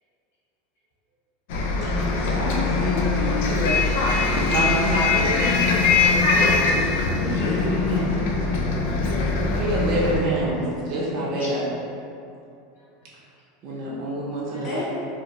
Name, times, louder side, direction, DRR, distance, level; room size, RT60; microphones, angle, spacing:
Bus, 1.5-10.2, left 3 dB, 70° left, 0.3 m, -22 dB
voice 1, 1.8-3.6 7.2-8.1 14.6-14.8, left 2 dB, 35° left, -9 dB, 1.0 m, -29 dB
voice 2, 4.5-5.3 9.5-11.6 13.6-14.8, right 1 dB, 45° right, -7 dB, 0.7 m, -26 dB
voice 3, 6.2-7.4 10.8-10.9 11.4-11.5 12.7-13.1 13.7-14.3 14.5-14.7, left 3 dB, 85° left, -6 dB, 0.7 m, -48 dB
2.6 x 2.0 x 3.0 m, 2.5 s
supercardioid pair, 135°, 0 cm